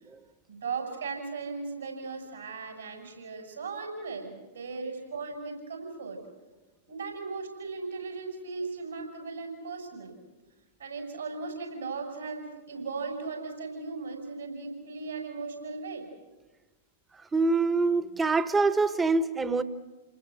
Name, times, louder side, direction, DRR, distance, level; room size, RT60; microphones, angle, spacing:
voice 1, 0.5-6.2 6.9-10.2 10.8-16.1, right 4 dB, 75° right, 3 dB, 7.0 m, -37 dB
voice 2, 17.3-19.6, right 3 dB, 15° right, 14 dB, 1.3 m, -25 dB
28.5 x 20.0 x 7.9 m, 1.2 s
figure-of-eight pair, 100°, 0 cm